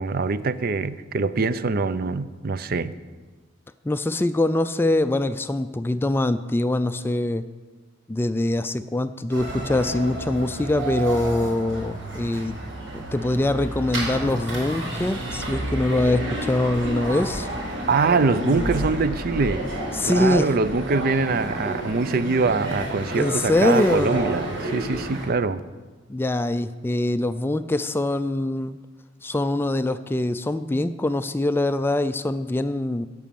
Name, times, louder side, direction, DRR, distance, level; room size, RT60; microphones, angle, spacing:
voice 1, 0.0-2.9 17.9-19.6 20.0-25.6, right 4 dB, 50° right, 14 dB, 0.5 m, -23 dB
voice 2, 3.8-7.4 8.1-12.6 12.9-17.5 18.4-18.8 19.9-20.5 23.2-24.1 26.1-28.8 29.2-33.1, left 1 dB, 10° left, 11 dB, 0.3 m, -23 dB
sound 1, 9.3-25.3, right 1 dB, 85° right, 5.1 m, -30 dB
16.5 x 6.2 x 7.0 m, 1.3 s
head